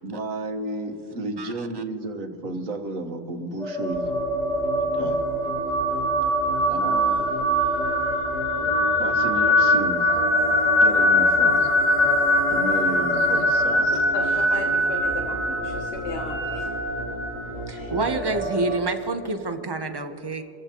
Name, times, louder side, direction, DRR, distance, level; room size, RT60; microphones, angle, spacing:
voice 1, 0.0-4.2 4.8-5.2 6.7-7.3 9.0-10.2 10.8-11.7 12.5-13.9, right 2 dB, 70° right, 5 dB, 1.6 m, -32 dB
voice 2, 1.4-1.8 17.7-20.4, right 3 dB, 30° right, 7 dB, 0.5 m, -28 dB
sound 1, 3.6-18.8, left 1 dB, 30° left, 3.0 m, -23 dB
sound 2, 3.9-18.4, right 1 dB, 65° left, 4.1 m, -35 dB
voice 3, 13.8-16.7 17.7-18.3, left 3 dB, 50° left, 1 dB, 1.2 m, -35 dB
29.0 x 15.0 x 2.9 m, 2.6 s
omnidirectional pair, 1.5 m